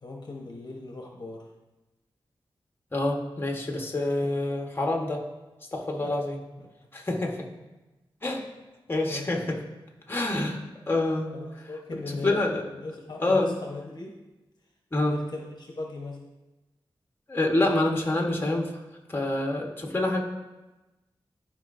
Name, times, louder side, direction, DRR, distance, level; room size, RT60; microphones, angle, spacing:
voice 1, 0.0-1.5 4.0-4.1 6.0-6.1 6.6-6.7 9.1-9.3 11.3-14.2 15.0-16.2, left 3 dB, 50° left, 0 dB, 1.0 m, -39 dB
voice 2, 2.9-5.2 5.7-6.4 6.9-7.5 8.2-8.5 8.9-9.6 10.1-10.6 10.9-11.3 12.2-12.6 13.2-13.5 14.9-15.2 17.3-18.7 19.1-20.2, left 2 dB, 25° left, 1 dB, 1.2 m, -26 dB
13.5 x 4.8 x 2.6 m, 1.1 s
wide cardioid pair, 80°, 9 cm